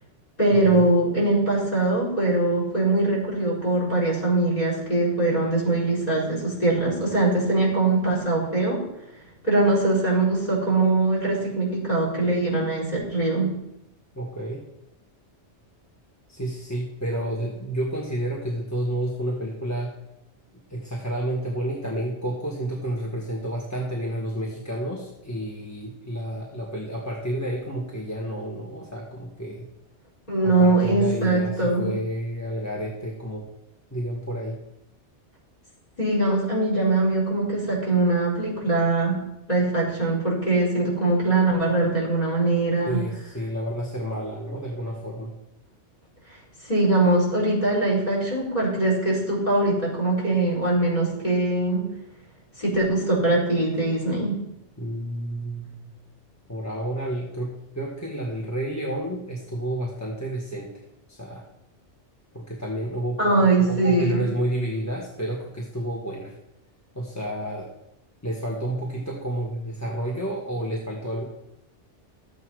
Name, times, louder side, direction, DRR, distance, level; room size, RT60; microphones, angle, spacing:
voice 1, 0.4-8.8 9.4-13.5 30.3-31.9 36.0-39.2 39.5-43.0 46.6-51.8 52.6-54.4 63.2-64.2, right 2 dB, 35° left, -3 dB, 5.1 m, -22 dB
voice 2, 14.1-14.7 16.3-19.9 20.7-29.7 30.4-33.5 33.9-34.6 42.9-45.3 54.8-55.8 56.5-60.7 61.1-61.4 62.3-66.3 66.9-67.7 68.2-71.2, right 1 dB, 15° left, -2 dB, 1.4 m, -30 dB
13.5 x 8.3 x 4.8 m, 0.85 s
omnidirectional pair, 1.2 m